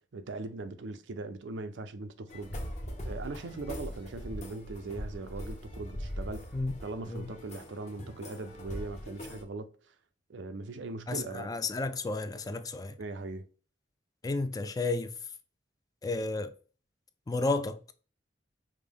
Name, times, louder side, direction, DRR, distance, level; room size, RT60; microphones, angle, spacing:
voice 1, 0.1-2.6 3.0-9.7 10.3-11.5 13.0-13.5, right 3 dB, 90° right, 0.5 m, -40 dB
sound 1, 2.3-9.4, equal, 40° left, 0.9 m, -41 dB
voice 2, 11.1-12.9 14.2-15.1 16.0-16.5 17.3-17.8, left 3 dB, 20° left, 0.3 m, -32 dB
5.2 x 2.1 x 3.5 m
head